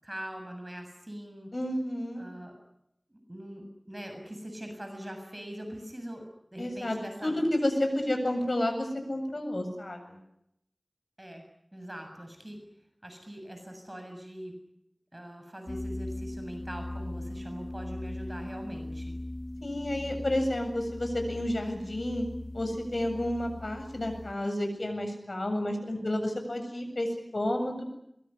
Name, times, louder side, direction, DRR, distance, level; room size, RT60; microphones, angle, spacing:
voice 1, 0.0-1.5 2.2-2.6 3.3-7.5 11.2-11.4 11.7-12.6 13.0-14.5 15.1-19.2, equal, 30° right, 4 dB, 7.1 m, -42 dB
voice 2, 1.5-2.2 6.6-10.2 19.6-22.3 22.5-27.8, left 1 dB, 70° left, 5 dB, 7.7 m, -31 dB
sound 1, 15.7-24.3, left 1 dB, 50° left, 1.9 m, -39 dB
23.0 x 22.5 x 9.9 m, 0.79 s
wide cardioid pair, 45°, 0 cm